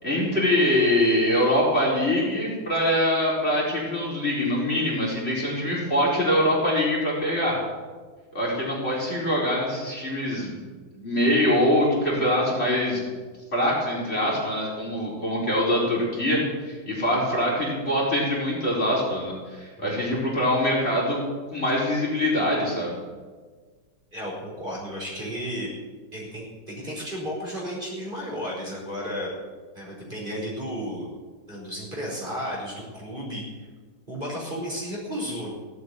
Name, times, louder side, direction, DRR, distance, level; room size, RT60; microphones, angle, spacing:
voice 1, 0.0-7.6 8.3-10.6 11.0-13.0 13.5-21.2 21.5-22.9, left 1 dB, 30° left, -4 dB, 4.9 m, -24 dB
voice 2, 24.1-25.7 26.1-29.3 29.7-31.1 31.5-33.7 34.1-35.5, equal, 25° right, -4 dB, 5.2 m, -33 dB
17.5 x 8.5 x 9.7 m, 1.4 s
omnidirectional pair, 2.1 m